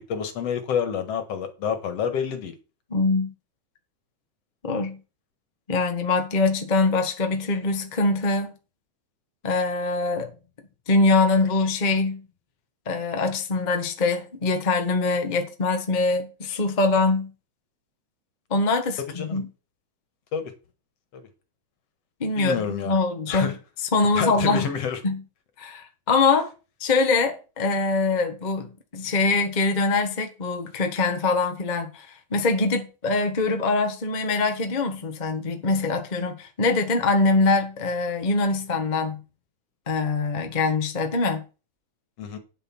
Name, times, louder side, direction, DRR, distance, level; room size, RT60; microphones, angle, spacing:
voice 1, 0.1-2.5 19.0-19.4 20.3-20.5 21.1-21.3 22.3-22.9 23.3-23.5 24.1-25.0 42.2-42.4, left 7 dB, 55° left, 2.4 m, -28 dB
voice 2, 2.9-3.3 4.6-5.0 5.7-8.5 9.4-10.3 10.9-12.2 12.9-17.3 18.5-19.5 22.2-23.5 23.9-24.7 25.0-25.2 25.6-26.5 26.8-39.2 39.9-41.4, left 3 dB, 80° left, 0.4 m, -23 dB
9.3 x 7.8 x 6.0 m
omnidirectional pair, 3.5 m